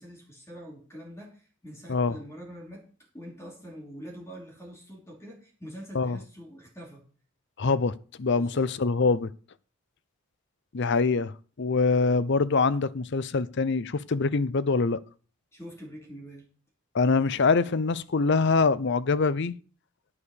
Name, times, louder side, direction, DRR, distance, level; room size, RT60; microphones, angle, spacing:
voice 1, 0.0-2.9 3.1-7.0 8.3-8.7 15.5-16.5, equal, 10° left, 2.7 m, -44 dB
voice 2, 7.6-9.3 10.7-15.0 16.9-19.6, left 4 dB, 50° left, 0.6 m, -24 dB
10.0 x 7.0 x 6.4 m
head